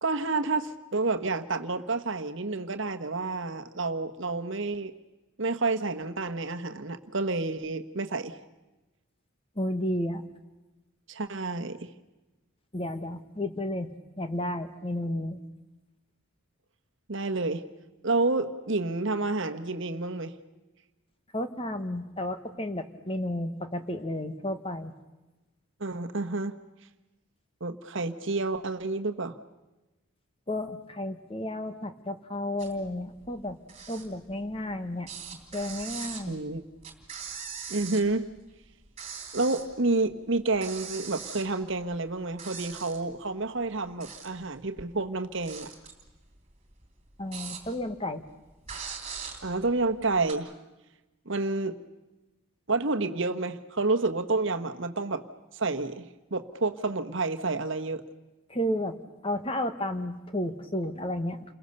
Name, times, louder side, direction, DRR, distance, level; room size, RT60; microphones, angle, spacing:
voice 1, 0.0-4.9 5.4-8.4 11.1-11.9 17.1-17.6 18.0-20.3 25.8-26.6 27.6-29.4 36.3-36.6 37.7-38.3 39.3-45.7 49.4-50.5 51.3-51.8 52.7-55.2 55.5-56.0 56.3-58.0, right 3 dB, 55° right, 8 dB, 1.3 m, -29 dB
voice 2, 9.6-10.2 12.7-13.9 14.2-15.4 21.3-24.9 30.5-33.6 33.9-35.1 35.5-36.4 47.2-48.2 58.5-59.0 59.2-61.5, left 1 dB, 25° left, 8 dB, 1.4 m, -32 dB
sound 1, 32.6-32.9 33.2-34.7 35.0-38.4 38.7-39.7 40.1-40.2 40.5-42.1 42.4-43.2 43.7-44.5 44.9-48.0 48.3-48.4 48.7-50.3, right 6 dB, 30° right, 3.1 m, -41 dB
29.5 x 22.0 x 6.8 m, 1.1 s
head